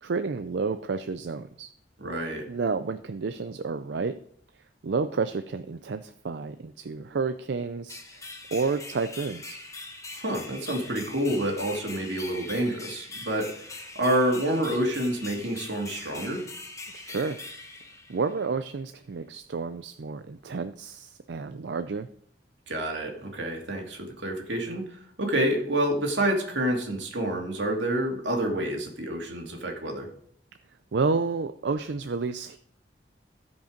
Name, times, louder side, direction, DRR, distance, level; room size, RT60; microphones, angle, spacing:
voice 1, 0.0-1.7 2.5-4.1 4.8-8.2 8.5-9.6 16.9-17.4 18.1-22.1 30.9-32.6, right 4 dB, 70° right, 10 dB, 0.5 m, -30 dB
voice 2, 2.0-2.4 10.1-16.4 22.7-30.1, right 1 dB, 90° right, 1 dB, 2.6 m, -28 dB
sound 1, 7.9-18.6, left 3 dB, 20° left, 1.3 m, -42 dB
15.5 x 5.4 x 5.1 m, 0.66 s
head